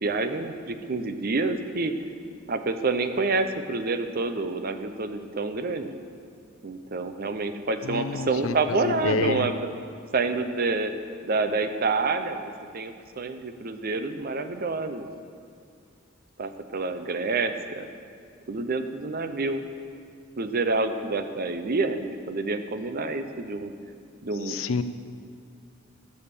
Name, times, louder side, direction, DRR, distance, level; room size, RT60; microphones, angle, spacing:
voice 1, 0.0-1.9 2.5-6.0 6.6-9.5 10.1-10.9 11.2-15.1 16.4-17.9 18.5-19.6 20.4-23.7 24.2-24.6, right 3 dB, 50° right, 9 dB, 0.7 m, -28 dB
voice 2, 7.9-8.6 8.8-9.5 24.5-24.8, left 5 dB, 80° left, 12 dB, 0.5 m, -28 dB
12.5 x 6.6 x 6.9 m, 2.3 s
head